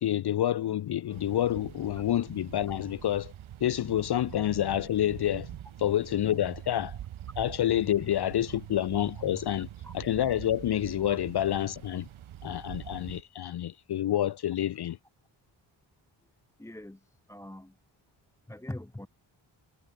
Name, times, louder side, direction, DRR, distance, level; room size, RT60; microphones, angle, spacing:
voice 1, 0.0-3.3 3.6-7.0 7.4-9.7 9.9-12.1 12.4-15.0, left 11 dB, 55° left, 0.6 m, -28 dB
sound 1, 1.1-13.2, right 11 dB, 90° right, 1.2 m, -44 dB
voice 2, 16.6-17.8 18.5-19.1, left 1 dB, 5° left, 0.9 m, -42 dB
wide cardioid pair, 170°, 47 cm